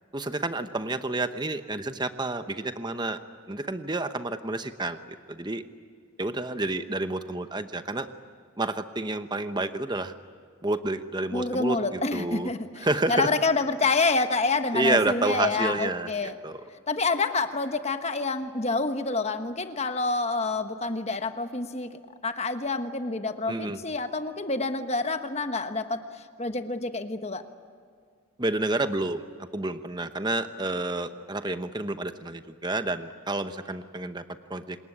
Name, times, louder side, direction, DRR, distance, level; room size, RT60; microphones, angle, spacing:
voice 1, 0.1-3.2 3.5-5.0 5.3-5.6 6.2-8.1 8.6-10.1 10.6-12.5 12.8-13.3 14.7-16.1 16.4-16.6 23.5-23.8 28.4-29.2 29.5-34.2 34.5-34.8, right 2 dB, 20° right, 9 dB, 0.9 m, -29 dB
voice 2, 11.3-16.3 16.9-27.5, left 3 dB, 30° left, 8 dB, 1.2 m, -28 dB
27.0 x 20.5 x 9.9 m, 2.1 s
head